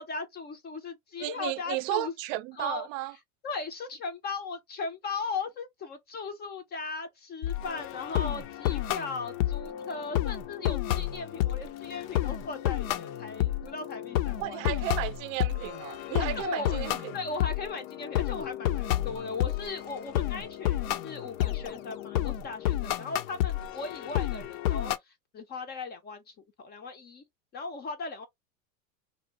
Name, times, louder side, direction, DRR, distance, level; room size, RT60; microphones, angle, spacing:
voice 1, 0.0-2.1 2.6-2.9 3.4-14.6 16.2-16.8 17.1-27.2 27.5-28.3, left 4 dB, 25° left, 0.5 m, -38 dB
voice 2, 1.2-3.2 14.4-17.1, right 16 dB, 65° right, 0.5 m, -34 dB
sound 1, 7.4-25.0, left 13 dB, 65° left, 0.5 m, -31 dB
2.6 x 2.1 x 2.8 m
hypercardioid pair, 115°, 43 cm